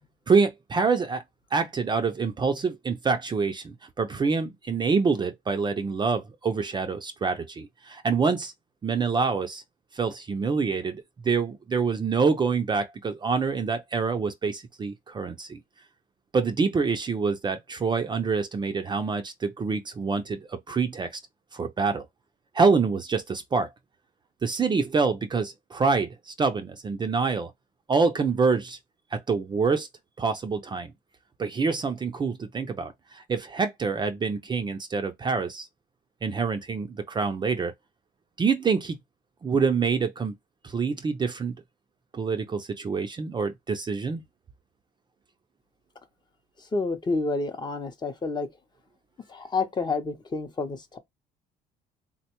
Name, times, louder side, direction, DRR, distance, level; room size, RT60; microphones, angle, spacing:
voice 1, 0.3-1.2 1.5-8.5 8.8-9.6 9.9-15.6 16.3-21.2 21.5-22.1 22.5-23.7 24.4-27.5 27.9-28.8 29.1-29.9 30.2-30.9 31.4-35.7 36.2-37.7 38.4-39.0 39.4-40.3 40.6-41.5 42.1-44.2, right 5 dB, 25° right, 0.4 m, -26 dB
voice 2, 46.7-48.5 49.3-51.0, left 3 dB, 25° left, 0.6 m, -29 dB
3.6 x 2.2 x 2.9 m
cardioid pair, 110°, 17 cm